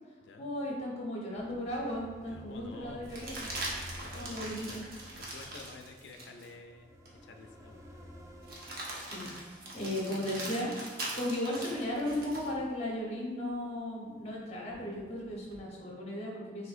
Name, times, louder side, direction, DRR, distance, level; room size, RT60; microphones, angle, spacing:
voice 1, 0.4-3.5 4.0-4.8 9.0-16.7, left 1 dB, 35° left, -3 dB, 0.9 m, -36 dB
sound 1, 1.3-10.9 11.6-13.7, equal, 15° right, 0.4 m, -52 dB
sound 2, 1.5-1.6 3.0-6.5 7.0-7.2 8.4-12.5 14.7-15.6, right 2 dB, 50° right, 0.8 m, -42 dB
voice 2, 2.3-3.0 4.0-4.8 5.2-8.2, left 3 dB, 65° left, 4 dB, 0.4 m, -51 dB
6.3 x 2.7 x 2.5 m, 1.4 s
head